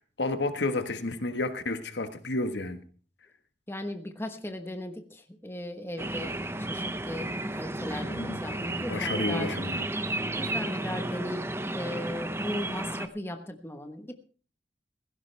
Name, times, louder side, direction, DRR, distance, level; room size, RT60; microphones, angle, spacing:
voice 1, 0.0-2.8 8.0-8.4 8.8-9.8, left 2 dB, 75° left, 9 dB, 1.5 m, -31 dB
voice 2, 3.7-9.6 10.3-14.1, left 1 dB, 15° left, 6 dB, 1.2 m, -37 dB
sound 1, 6.0-13.1, right 1 dB, 15° right, 0.8 m, -33 dB
16.5 x 16.0 x 3.4 m, 0.39 s
head